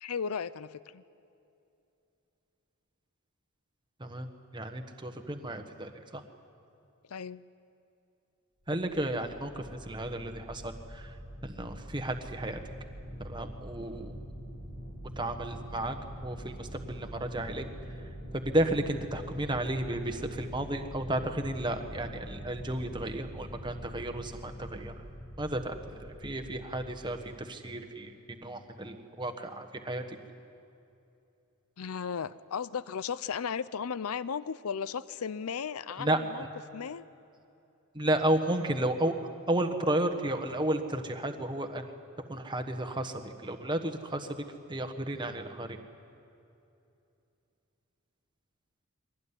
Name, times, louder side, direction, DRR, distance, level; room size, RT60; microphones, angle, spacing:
voice 1, 0.0-1.0 7.1-7.4 31.8-36.4 36.7-37.1, left 6 dB, 85° left, 17 dB, 0.5 m, -35 dB
voice 2, 4.5-6.2 8.7-11.1 11.4-12.6 13.2-14.1 15.2-16.0 16.2-17.6 18.3-24.9 25.4-30.0 36.0-36.5 37.9-39.1 39.5-41.8 42.3-44.3 44.7-45.8, right 1 dB, 20° right, 6 dB, 1.4 m, -33 dB
sound 1, 8.6-26.6, equal, 55° left, 5.0 m, -44 dB
23.0 x 18.0 x 9.8 m, 2.7 s
head